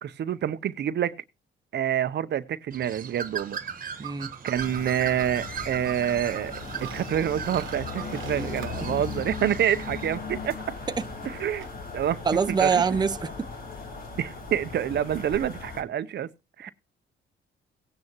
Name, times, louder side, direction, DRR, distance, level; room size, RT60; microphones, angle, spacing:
voice 1, 0.0-1.2 1.7-3.6 4.4-10.6 11.4-11.7 11.9-12.2 12.6-12.7 14.2-16.3 16.6-16.7, right 10 dB, 60° right, 0.7 m, -27 dB
Bird, 2.7-10.2, right 7 dB, 45° right, 1.4 m, -39 dB
voice 2, 4.0-4.3 8.4-8.5 11.0-11.1 12.2-13.5, right 5 dB, 20° right, 0.7 m, -25 dB
sound 1, 4.5-15.8, left 4 dB, 45° left, 3.0 m, -38 dB
sound 2, 6.6-10.2 11.5-11.8, right 9 dB, 75° right, 1.1 m, -47 dB
17.0 x 9.4 x 3.0 m
cardioid pair, 90°, 20 cm